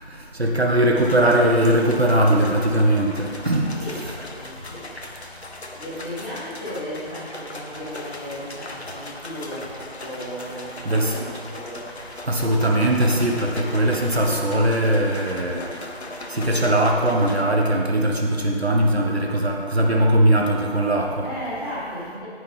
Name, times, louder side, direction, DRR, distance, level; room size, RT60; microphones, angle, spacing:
voice 1, 0.1-4.1 10.8-11.3 12.2-15.6 16.3-21.3, right 1 dB, 75° right, 0 dB, 1.6 m, -20 dB
sound 1, 1.0-17.4, left 1 dB, 90° left, 1.3 m, -38 dB
voice 2, 3.8-4.8 5.7-11.9 21.2-22.3, equal, 20° left, -11 dB, 2.6 m, -35 dB
9.6 x 9.5 x 3.6 m, 2.1 s
figure-of-eight pair, 170°, 32 cm